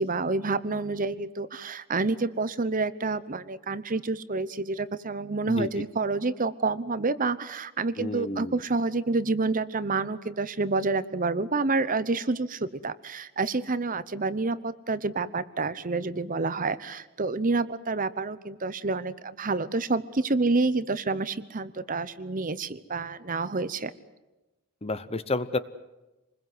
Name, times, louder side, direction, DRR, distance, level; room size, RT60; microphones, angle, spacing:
voice 1, 0.0-23.9, right 3 dB, 35° right, 15 dB, 0.9 m, -28 dB
voice 2, 8.0-8.6 24.8-25.6, left 2 dB, 25° left, 14 dB, 0.9 m, -30 dB
27.0 x 21.0 x 7.9 m, 1.0 s
head